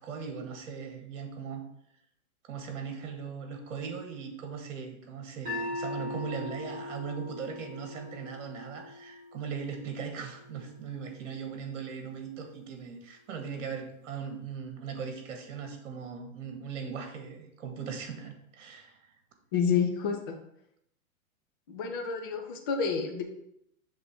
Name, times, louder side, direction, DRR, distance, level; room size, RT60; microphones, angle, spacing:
voice 1, 0.0-1.6 2.4-19.0, right 6 dB, 60° right, 5 dB, 1.6 m, -39 dB
sound 1, 5.5-11.6, left 2 dB, 20° right, 2.7 m, -41 dB
voice 2, 19.5-20.4 21.7-23.2, left 6 dB, 20° left, 3 dB, 0.3 m, -29 dB
6.7 x 3.7 x 5.1 m, 0.77 s
hypercardioid pair, 130°, 43 cm